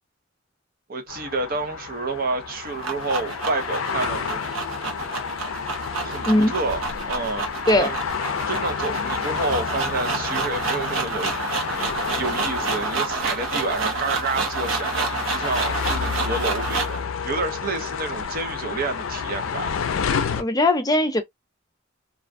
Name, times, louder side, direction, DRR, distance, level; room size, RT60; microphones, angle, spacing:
voice 1, 0.9-4.4 6.0-6.8 7.1-7.5 7.8-7.9 8.5-11.3 12.2-19.7, right 3 dB, 50° right, 0.7 m, -29 dB
sound 1, 1.1-20.4, left 6 dB, 80° left, 0.4 m, -30 dB
sound 2, 2.4-17.0, right 4 dB, 80° right, 0.8 m, -29 dB
voice 2, 20.4-21.2, left 1 dB, 20° left, 0.5 m, -19 dB
2.4 x 2.2 x 2.4 m
head